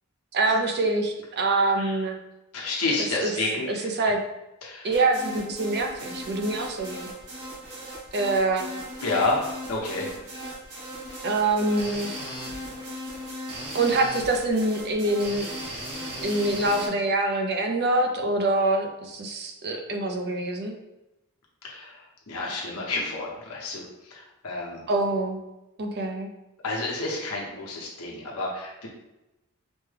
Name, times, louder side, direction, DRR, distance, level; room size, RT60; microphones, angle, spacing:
voice 1, 0.3-2.2 3.2-3.3 3.7-4.2 4.8-7.1 8.1-8.7 11.2-12.1 13.7-15.5 16.2-20.8 24.9-25.4 25.8-26.3, right 2 dB, 50° right, 3 dB, 0.6 m, -25 dB
voice 2, 2.5-3.9 4.6-4.9 9.0-10.2 21.6-22.0 22.3-23.8 24.1-24.8 26.6-28.9, left 2 dB, 75° left, -3 dB, 1.0 m, -29 dB
sound 1, 4.9-16.9, equal, 85° right, 1.5 m, -37 dB
5.1 x 2.2 x 3.3 m, 0.95 s
head